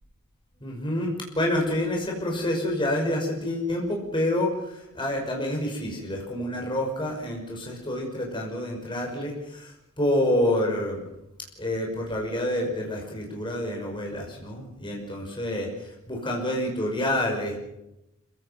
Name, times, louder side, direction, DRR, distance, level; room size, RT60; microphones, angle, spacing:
voice 1, 0.6-11.0 11.6-17.6, left 1 dB, 20° left, 0 dB, 5.6 m, -28 dB
26.5 x 17.0 x 5.9 m, 0.88 s
head